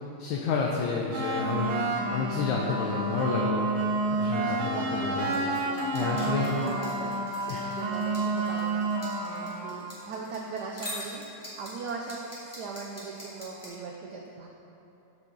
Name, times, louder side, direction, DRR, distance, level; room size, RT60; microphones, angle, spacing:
voice 1, 0.2-1.7 2.1-3.7 4.1-5.3 5.9-6.5 7.5-7.7 9.3-9.4, left 5 dB, 70° left, -1 dB, 1.3 m, -30 dB
sound 1, 1.1-9.9, right 2 dB, 70° right, 1.6 m, -30 dB
voice 2, 2.0-2.3 4.2-8.9 9.4-11.3 11.6-14.5, right 4 dB, 90° right, 0 dB, 0.8 m, -39 dB
sound 2, 5.3-13.7, equal, 5° left, 1.6 m, -43 dB
7.6 x 7.4 x 3.8 m, 3.0 s
omnidirectional pair, 2.4 m